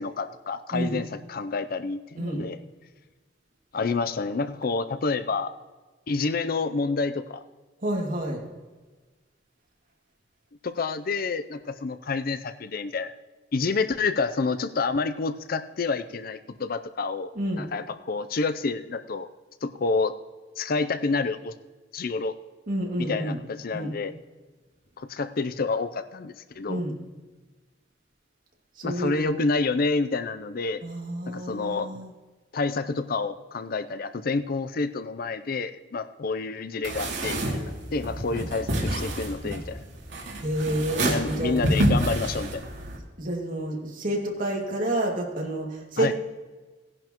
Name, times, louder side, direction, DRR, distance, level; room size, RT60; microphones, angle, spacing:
voice 1, 0.0-2.6 3.7-5.5 6.1-7.4 10.6-13.1 13.5-17.3 17.6-19.3 19.6-20.1 20.6-21.5 21.9-22.4 23.0-24.1 25.0-26.8 28.8-30.8 31.3-32.0 32.5-39.8 41.0-42.6 46.0-46.1, left 4 dB, 55° left, 12 dB, 0.5 m, -28 dB
voice 2, 7.8-8.4 17.4-17.7 22.7-23.4 23.7-23.9 26.7-27.0 28.8-29.4 30.8-32.1 40.4-41.6 43.2-46.1, right 1 dB, 50° right, 0 dB, 2.3 m, -29 dB
sound 1, 36.8-43.0, right 1 dB, 75° right, 2.6 m, -28 dB
17.0 x 10.5 x 3.0 m, 1.3 s
head